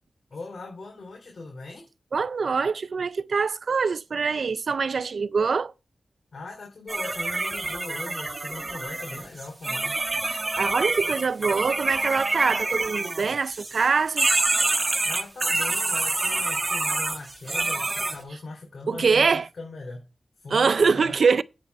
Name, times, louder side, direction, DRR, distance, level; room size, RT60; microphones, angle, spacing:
voice 1, 0.3-1.9 6.3-10.0 15.0-20.1 20.4-21.1, left 3 dB, 70° left, 3.2 m, -40 dB
voice 2, 2.1-5.7 10.3-14.3 18.9-19.5 20.5-21.4, right 5 dB, 80° right, 0.4 m, -24 dB
sound 1, 6.9-13.9 14.2-18.2, right 2 dB, 40° right, 1.3 m, -27 dB
8.6 x 7.0 x 4.7 m
wide cardioid pair, 65°, 0 cm